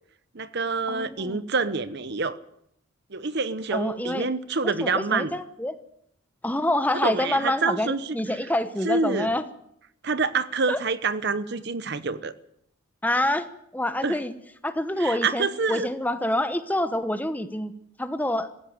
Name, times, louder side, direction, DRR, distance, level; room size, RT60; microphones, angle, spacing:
voice 1, 0.3-2.4 3.1-5.3 7.0-8.2 8.8-9.3 10.0-12.3 14.0-14.2 15.0-15.9, right 4 dB, 50° right, 14 dB, 0.9 m, -27 dB
voice 2, 0.9-1.4 3.7-4.3 4.6-5.8 6.4-9.4 10.7-10.8 13.0-13.5 13.7-14.3 14.6-17.7 18.0-18.5, left 1 dB, 10° left, 11 dB, 0.9 m, -27 dB
18.0 x 16.0 x 9.4 m, 0.75 s
head